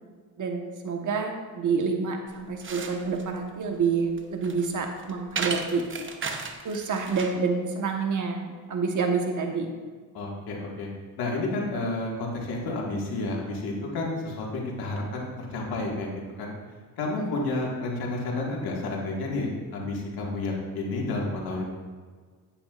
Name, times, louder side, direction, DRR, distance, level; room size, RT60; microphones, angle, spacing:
voice 1, 0.4-5.9 6.6-9.7 17.2-17.3, right 5 dB, 55° right, 2 dB, 1.3 m, -28 dB
sound 1, 2.3-7.4, right 4 dB, 35° right, 0.9 m, -36 dB
voice 2, 10.1-10.9 11.2-16.1 16.4-16.5 17.0-21.7, left 2 dB, 90° left, -2 dB, 1.9 m, -30 dB
10.0 x 8.7 x 2.5 m, 1.5 s
cardioid pair, 90°, 36 cm